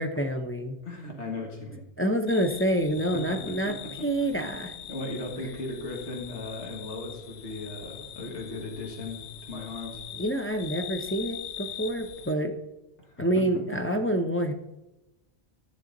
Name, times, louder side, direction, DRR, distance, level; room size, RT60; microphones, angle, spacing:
voice 1, 0.0-0.8 2.0-3.7 4.0-4.7 10.2-12.5 13.2-14.5, right 1 dB, 15° left, 3 dB, 0.6 m, -27 dB
voice 2, 0.8-1.8 3.1-4.3 4.9-10.0 13.0-13.8, left 2 dB, 90° left, 1 dB, 2.0 m, -37 dB
sound 1, 2.3-12.3, left 10 dB, 70° left, 0.8 m, -42 dB
14.0 x 6.9 x 4.0 m, 1.0 s
omnidirectional pair, 1.1 m